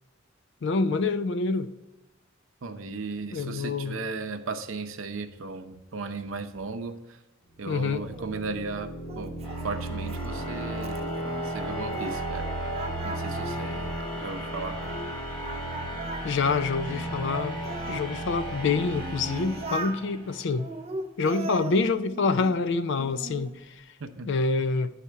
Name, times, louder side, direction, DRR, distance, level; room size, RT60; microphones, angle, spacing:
voice 1, 0.6-1.7 3.3-4.0 7.7-8.0 16.2-17.6 17.9-20.7 21.2-23.8 24.3-24.9, left 4 dB, 65° left, 0.4 m, -26 dB
voice 2, 2.6-7.2 7.6-9.4 9.6-12.5 13.0-14.8 24.0-24.3, right 3 dB, 80° right, 0.6 m, -36 dB
sound 1, 7.6-20.5, right 1 dB, 25° left, 1.3 m, -34 dB
Singing, 7.9-12.4 12.7-15.1 15.4-18.1 18.7-20.0 20.6-22.6 23.0-23.6, right 2 dB, 30° right, 0.5 m, -39 dB
9.9 x 4.2 x 4.6 m
head